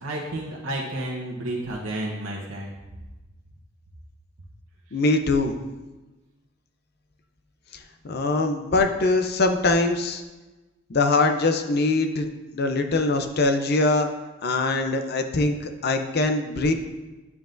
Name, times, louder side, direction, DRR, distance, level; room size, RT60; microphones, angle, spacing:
voice 1, 0.0-2.7, right 1 dB, 85° right, -3 dB, 1.0 m, -31 dB
voice 2, 4.9-5.6 8.0-10.2 10.9-12.3 12.5-14.1 14.4-15.6 15.8-16.7, left 2 dB, 50° left, 6 dB, 0.6 m, -22 dB
9.6 x 7.1 x 2.6 m, 1.1 s
head